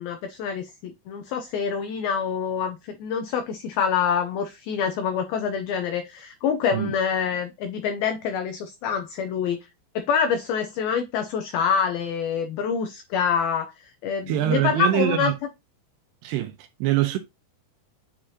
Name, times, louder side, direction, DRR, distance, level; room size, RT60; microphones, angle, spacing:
voice 1, 0.0-9.7 10.0-15.3, left 7 dB, 85° left, 2.1 m, -26 dB
voice 2, 14.3-15.3 16.2-16.5 16.8-17.2, right 12 dB, 85° right, 2.5 m, -23 dB
7.4 x 4.9 x 2.8 m
omnidirectional pair, 5.2 m